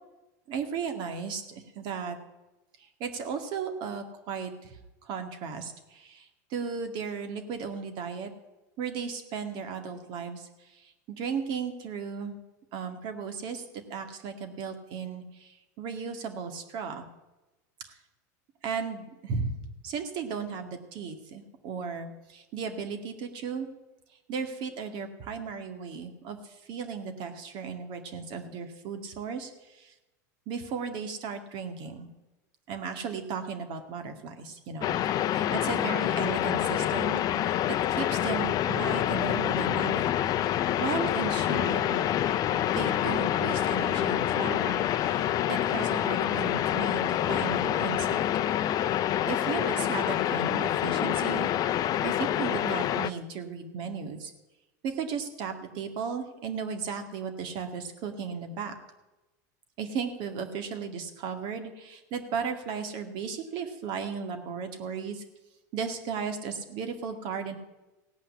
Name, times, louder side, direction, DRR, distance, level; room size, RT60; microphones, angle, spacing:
voice 1, 0.5-2.2 3.0-4.8 5.1-6.3 6.5-8.3 8.8-10.5 11.1-12.4 12.7-13.6 13.9-17.0 18.6-19.5 19.8-23.7 24.3-26.4 26.7-29.5 29.8-29.9 30.5-32.1 32.7-35.0 35.2-40.1 40.8-42.1 42.7-48.2 49.3-51.5 52.0-54.3 54.8-58.7 59.8-65.2 65.7-67.6, right 6 dB, 55° right, 6 dB, 2.2 m, -35 dB
sound 1, 34.8-53.1, left 11 dB, 40° left, 0.6 m, -27 dB
16.5 x 5.7 x 9.8 m, 1.0 s
hypercardioid pair, 100°, 10 cm